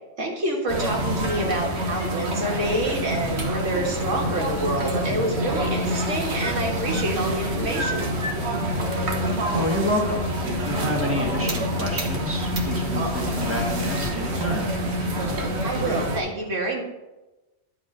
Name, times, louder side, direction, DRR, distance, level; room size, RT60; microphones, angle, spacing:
voice 1, 0.2-8.1 15.6-16.8, right 1 dB, 85° right, 0 dB, 2.0 m, -27 dB
sound 1, 0.7-16.2, equal, 65° right, 1.4 m, -27 dB
voice 2, 9.5-14.7, left 1 dB, 10° right, -1 dB, 1.5 m, -28 dB
10.5 x 3.8 x 6.5 m, 1.1 s
omnidirectional pair, 1.2 m